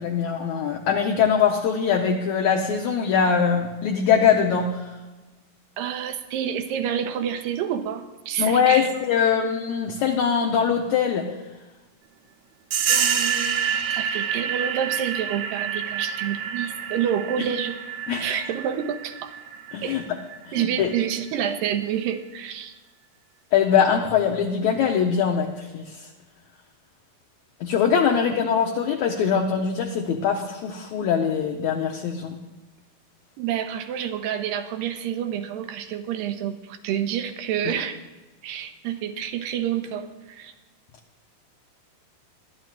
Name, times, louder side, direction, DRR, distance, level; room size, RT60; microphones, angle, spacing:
voice 1, 0.0-4.8 8.4-11.3 18.1-18.4 19.7-20.0 20.5-20.9 23.5-26.0 27.6-32.4, left 7 dB, 70° left, 0 dB, 1.8 m, -22 dB
voice 2, 5.8-9.3 12.9-17.8 18.2-19.3 19.8-20.0 20.5-22.8 29.2-29.3 33.4-38.0 38.4-40.5, right 9 dB, 85° right, 7 dB, 2.5 m, -28 dB
sound 1, 12.7-21.0, right 8 dB, 70° right, 1.8 m, -28 dB
22.5 x 11.5 x 2.5 m, 1.2 s
omnidirectional pair, 4.0 m